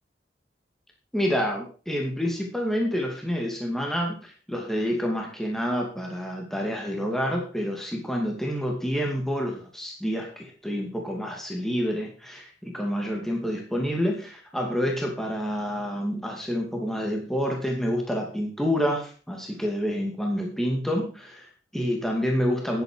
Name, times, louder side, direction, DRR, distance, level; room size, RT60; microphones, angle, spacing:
voice 1, 1.1-22.8, equal, ahead, 0 dB, 2.5 m, -28 dB
11.0 x 10.5 x 4.7 m, 0.37 s
head